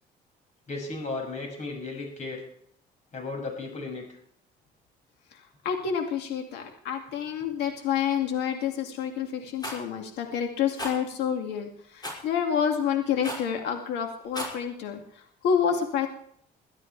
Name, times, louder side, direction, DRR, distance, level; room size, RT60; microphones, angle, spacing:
voice 1, 0.7-2.4 3.1-4.0, left 3 dB, 45° left, 2 dB, 6.4 m, -35 dB
voice 2, 5.3-16.1, left 7 dB, 80° left, 3 dB, 2.3 m, -28 dB
Rattle, 9.6-9.8 10.8-10.9 12.0-12.2 13.2-13.5 14.2-14.6, equal, 25° left, 6.1 m, -34 dB
22.0 x 12.0 x 3.4 m, 0.65 s
cardioid pair, 110°, 17 cm